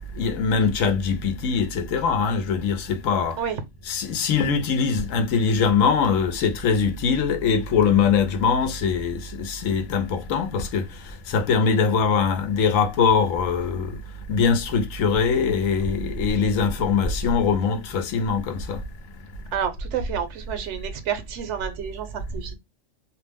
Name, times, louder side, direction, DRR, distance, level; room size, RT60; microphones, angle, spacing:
voice 1, 0.2-3.4 3.8-10.9 11.3-14.0 14.3-18.8, left 5 dB, 85° left, 1.0 m, -22 dB
voice 2, 19.5-22.5, right 8 dB, 70° right, 0.9 m, -29 dB
2.6 x 2.0 x 3.3 m
omnidirectional pair, 1.3 m